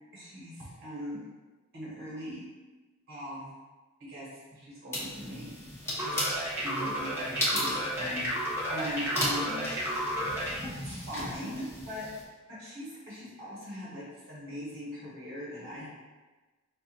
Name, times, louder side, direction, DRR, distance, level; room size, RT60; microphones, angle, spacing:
voice 1, 0.1-1.2 1.7-2.4 3.1-3.5 4.0-5.5 5.9-8.4 8.7-9.7 10.6-12.1 12.5-15.9, equal, 50° right, -8 dB, 1.3 m, -40 dB
sound 1, 4.9-12.2, left 1 dB, 10° left, 1.0 m, -36 dB
sound 2, 6.0-10.6, equal, 10° right, 1.0 m, -32 dB
5.5 x 2.5 x 2.5 m, 1.2 s
head